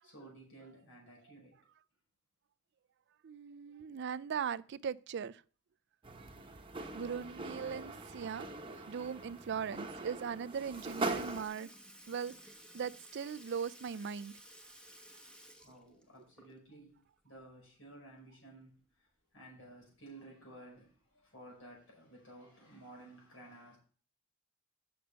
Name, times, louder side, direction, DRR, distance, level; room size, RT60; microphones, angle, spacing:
voice 1, 0.0-1.6 15.6-23.8, right 1 dB, 70° left, 5.2 m, -55 dB
voice 2, 3.2-5.4 6.9-8.5 8.9-11.7 12.1-12.3 12.7-14.3, right 7 dB, 55° right, 0.4 m, -39 dB
sound 1, 6.0-11.4, right 2 dB, 25° right, 1.0 m, -42 dB
Sink (filling or washing) / Liquid, 10.3-10.4 10.7-16.8 17.2-17.3 18.8-18.9 19.8-19.9 20.8-21.0 21.8-21.9, equal, 5° left, 1.0 m, -56 dB
6.8 x 6.6 x 6.7 m
head